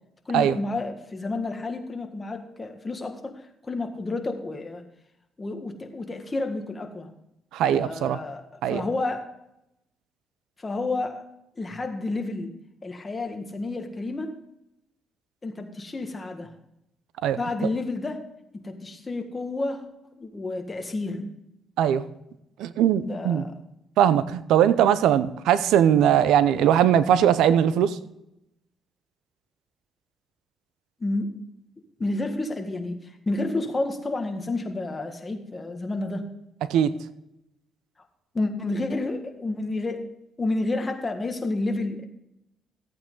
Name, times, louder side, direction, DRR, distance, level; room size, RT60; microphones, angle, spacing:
voice 1, 0.3-4.8 5.4-7.1 7.7-9.3 10.6-11.3 11.6-12.5 12.8-14.4 15.4-16.5 17.4-21.3 23.0-23.5 31.0-31.4 32.0-36.3 38.3-42.1, left 2 dB, 25° left, 5 dB, 1.8 m, -30 dB
voice 2, 7.5-8.2 8.6-8.8 17.2-17.4 21.8-22.0 22.6-23.4 24.0-28.0 36.7-36.9, right 9 dB, 85° right, 14 dB, 0.7 m, -20 dB
14.5 x 8.6 x 3.9 m, 0.84 s
cardioid pair, 90°, 0 cm